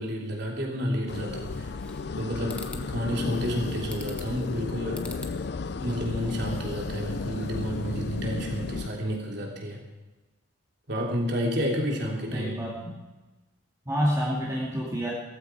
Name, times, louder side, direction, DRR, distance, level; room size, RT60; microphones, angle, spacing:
voice 1, 0.0-1.7 2.2-5.1 5.8-9.8 10.9-12.6, equal, 55° right, -1 dB, 3.4 m, -30 dB
sound 1, 1.1-8.9, left 4 dB, 50° left, 0.4 m, -34 dB
sound 2, 1.5-2.2 2.5-2.9 3.9-4.4 4.9-5.4 5.8-6.8, left 1 dB, 5° left, 1.0 m, -44 dB
voice 2, 12.3-13.0 13.9-15.1, equal, 15° right, -5 dB, 2.2 m, -28 dB
17.5 x 14.0 x 4.8 m, 1.2 s
head